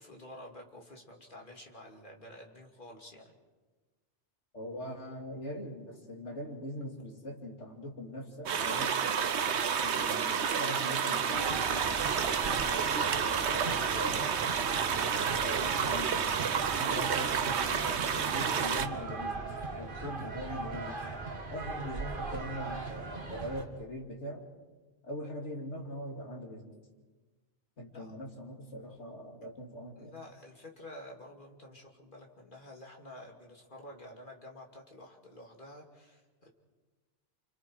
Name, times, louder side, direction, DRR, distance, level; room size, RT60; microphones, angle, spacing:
voice 1, 0.0-3.3 9.9-10.1 27.9-28.1 30.0-36.5, left 1 dB, 45° left, 0 dB, 3.0 m, -50 dB
voice 2, 4.5-9.2 9.8-11.9 12.5-14.4 15.4-16.4 16.7-21.0 21.5-24.4 25.0-26.7 27.8-30.1, equal, 85° left, 1 dB, 3.1 m, -42 dB
sound 1, 8.5-18.9, right 7 dB, 75° right, 1.2 m, -30 dB
sound 2, 11.3-23.6, right 3 dB, 50° right, 2.1 m, -39 dB
29.5 x 25.5 x 4.8 m, 1.3 s
omnidirectional pair, 1.2 m